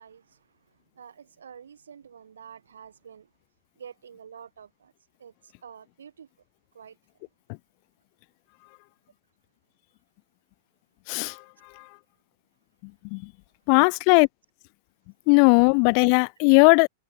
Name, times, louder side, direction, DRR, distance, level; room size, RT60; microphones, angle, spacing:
voice 1, 0.0-3.3 3.8-4.9 5.2-6.3 6.7-7.3 11.6-11.7, right 7 dB, 70° right, 5.7 m, -48 dB
voice 2, 11.1-11.4 11.8-11.9 13.1-13.3 13.7-14.3 15.3-16.9, left 40 dB or more, 45° left, 0.4 m, -18 dB
figure-of-eight pair, 95°, 0 cm